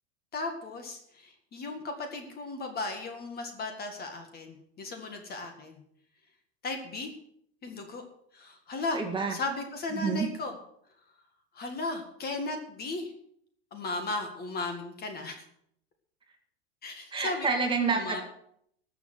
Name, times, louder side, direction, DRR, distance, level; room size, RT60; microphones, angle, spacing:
voice 1, 0.3-5.8 6.6-7.1 7.6-8.0 8.3-9.0 9.3-10.6 11.5-13.1 13.7-15.4 16.8-17.5 17.9-18.2, left 3 dB, 30° left, 6 dB, 2.0 m, -36 dB
voice 2, 8.9-9.4 10.0-10.3 17.1-18.2, right 5 dB, 15° right, 2 dB, 2.3 m, -28 dB
13.0 x 7.0 x 8.0 m, 0.68 s
supercardioid pair, 135°, 34 cm